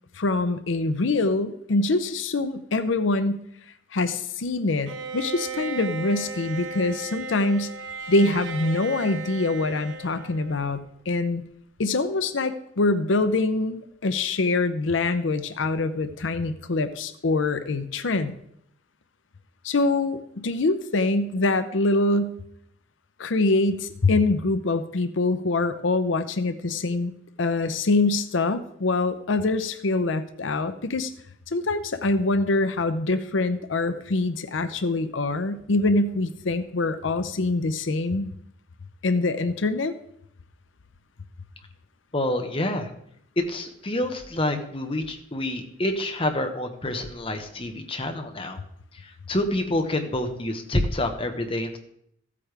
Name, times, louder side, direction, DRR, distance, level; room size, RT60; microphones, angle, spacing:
voice 1, 0.1-3.4 3.9-7.7 8.1-10.8 11.1-11.4 11.8-18.3 19.6-22.4 23.2-27.1 27.4-31.1 31.5-38.3 39.0-39.9, left 2 dB, 80° left, 11 dB, 0.7 m, -24 dB
Bowed string instrument, 4.9-10.9, right 3 dB, 85° right, 1.0 m, -36 dB
voice 2, 42.1-42.9 43.4-48.6 48.9-51.8, left 1 dB, 30° left, 5 dB, 1.2 m, -27 dB
15.0 x 8.5 x 3.4 m, 0.70 s
head